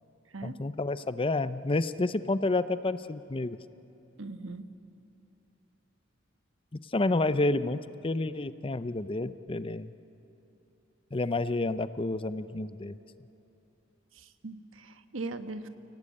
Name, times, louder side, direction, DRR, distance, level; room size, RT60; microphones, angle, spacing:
voice 1, 0.4-3.6 6.9-9.9 11.1-12.9, left 2 dB, 25° left, 14 dB, 0.6 m, -29 dB
voice 2, 4.2-4.7 14.1-15.7, right 3 dB, 85° right, 9 dB, 1.3 m, -40 dB
29.5 x 18.5 x 8.6 m, 3.0 s
head